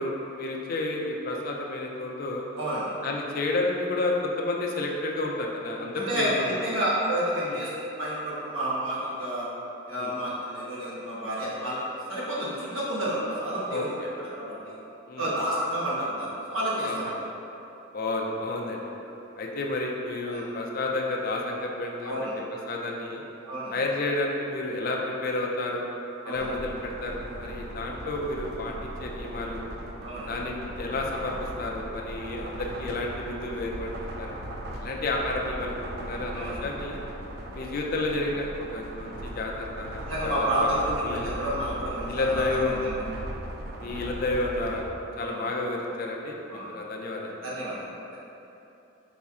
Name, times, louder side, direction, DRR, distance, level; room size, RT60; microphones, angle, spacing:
voice 1, 0.0-2.4 3.0-6.6 7.5-7.6 9.9-10.1 13.7-13.8 15.1-15.3 16.8-17.2 17.9-18.8 19.4-22.1 22.7-23.2 23.7-25.8 26.2-29.6 30.3-33.9 34.2-34.4 34.8-35.7 36.0-37.0 37.5-41.3 42.1-42.8 43.8-44.8 45.2-47.3, left 2 dB, 45° left, 0 dB, 0.4 m, -31 dB
voice 2, 2.6-2.9 5.9-7.7 8.0-9.5 9.9-13.9 14.2-14.7 15.2-17.1 20.3-20.4 22.0-22.3 23.5-23.7 26.2-26.5 30.0-30.3 36.3-36.6 40.1-42.9 45.2-45.4 46.5-46.7 47.4-48.2, right 1 dB, 85° right, -7 dB, 1.1 m, -30 dB
sound 1, 26.3-44.9, right 1 dB, 50° right, 0.4 m, -38 dB
4.2 x 4.1 x 2.4 m, 2.9 s
head